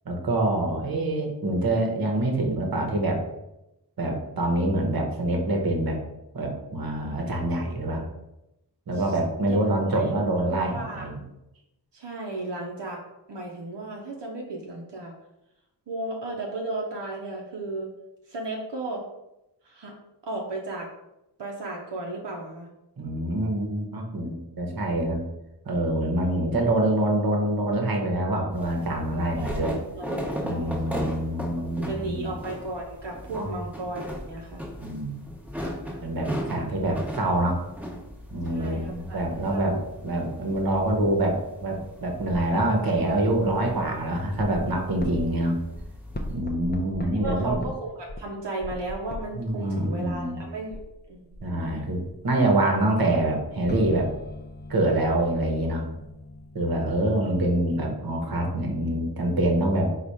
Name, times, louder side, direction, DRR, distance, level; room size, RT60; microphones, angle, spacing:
voice 1, 0.0-3.2 4.0-6.0 6.3-8.0 8.9-11.2 23.0-25.2 25.6-29.8 30.4-32.3 33.3-33.5 34.8-35.2 36.0-37.6 38.3-45.6 46.3-47.7 49.3-50.4 51.4-54.1 54.7-55.9 56.5-59.9, right 1 dB, 60° right, 1 dB, 1.0 m, -25 dB
voice 2, 10.7-11.1 11.9-13.0 13.3-15.2 15.9-17.9 18.3-19.0 19.6-19.9 20.2-20.9 21.4-22.7 24.7-24.8 29.4-31.0 31.8-34.6 38.5-39.8 47.0-50.8 51.1-51.4 56.6-56.9, right 2 dB, 80° right, -1 dB, 0.7 m, -35 dB
sound 1, 28.5-46.4, equal, 5° right, 0.9 m, -38 dB
sound 2, 44.4-45.4 45.7-45.9 46.1-47.7 48.1-49.5 49.8-57.5, left 1 dB, 25° left, 0.5 m, -39 dB
4.1 x 2.4 x 4.7 m, 0.90 s
wide cardioid pair, 85°, 41 cm